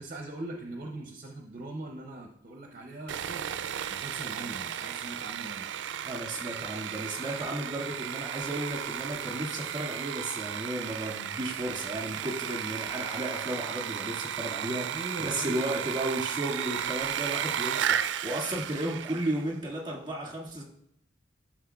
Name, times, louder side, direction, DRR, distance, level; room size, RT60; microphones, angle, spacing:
voice 1, 0.0-3.4 3.9-5.7 14.8-15.8, right 2 dB, 50° right, 2 dB, 0.6 m, -41 dB
Sawing, 3.1-19.5, right 9 dB, 80° right, 0.3 m, -34 dB
voice 2, 6.0-20.6, right 1 dB, 25° right, -3 dB, 1.9 m, -34 dB
11.5 x 6.1 x 2.3 m, 0.78 s
head